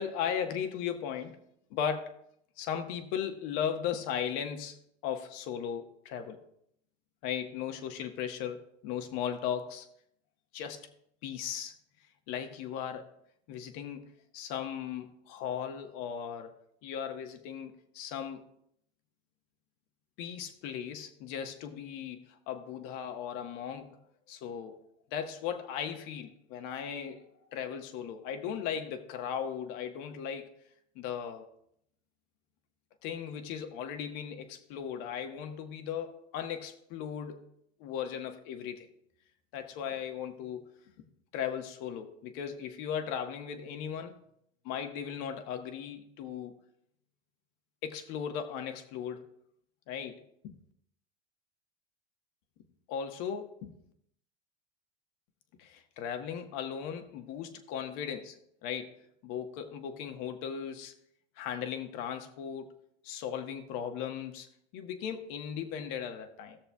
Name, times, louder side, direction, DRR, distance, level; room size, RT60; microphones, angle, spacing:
voice 1, 0.0-1.4 1.7-2.1 2.6-4.8 5.0-6.4 7.2-9.8 10.5-10.9 11.2-11.7 12.3-13.1 13.5-16.5 16.8-18.4 20.2-24.0 24.3-24.9 25.1-30.5 30.9-31.5 33.0-37.5 37.8-38.9 39.5-40.7 41.3-44.1 44.6-46.6 47.8-49.3 49.9-50.6 52.9-53.7 55.6-58.9 59.2-60.9 61.4-62.8 63.0-64.5 64.7-66.6, left 8 dB, 60° left, 6 dB, 1.4 m, -37 dB
19.0 x 6.7 x 2.3 m, 0.72 s
supercardioid pair, 115°, 35 cm